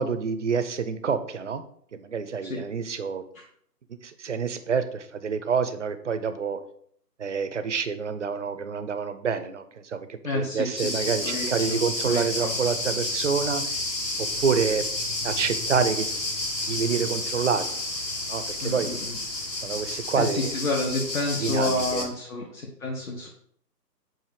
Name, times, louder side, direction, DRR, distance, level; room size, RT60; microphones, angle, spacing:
voice 1, 0.0-1.6 1.9-3.2 4.0-6.6 7.2-13.7 14.4-14.9 15.2-16.1 16.7-17.7 18.3-19.0 19.6-20.5 21.4-22.1, right 6 dB, 50° right, 10 dB, 0.6 m, -27 dB
voice 2, 10.2-11.8 12.0-12.5 18.6-19.2 19.9-23.3, left 2 dB, 55° left, -2 dB, 1.3 m, -30 dB
sound 1, 10.8-22.0, left 2 dB, 90° left, 1.7 m, -30 dB
7.6 x 2.6 x 4.9 m, 0.64 s
figure-of-eight pair, 145°, 49 cm